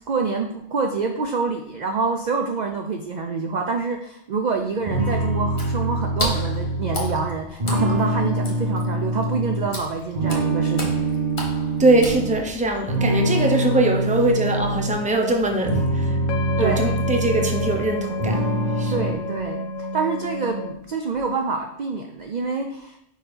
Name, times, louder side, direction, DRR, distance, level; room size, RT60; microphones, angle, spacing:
voice 1, 0.1-11.0 16.6-16.9 18.9-23.0, right 4 dB, 55° right, 3 dB, 0.5 m, -26 dB
sound 1, 4.9-9.8 10.1-12.4 12.9-15.0 15.5-17.9 18.2-19.1, right 2 dB, 30° right, 1.4 m, -24 dB
Water / Splash splatter, 5.5-12.7, left 2 dB, 45° left, 1.4 m, -34 dB
voice 2, 11.8-16.2 16.6-18.5 18.8-19.1, right 2 dB, 10° right, 2 dB, 0.5 m, -22 dB
sound 2, 14.4-20.7, left 2 dB, 90° left, 1.0 m, -31 dB
4.8 x 4.4 x 5.1 m, 0.76 s
omnidirectional pair, 1.3 m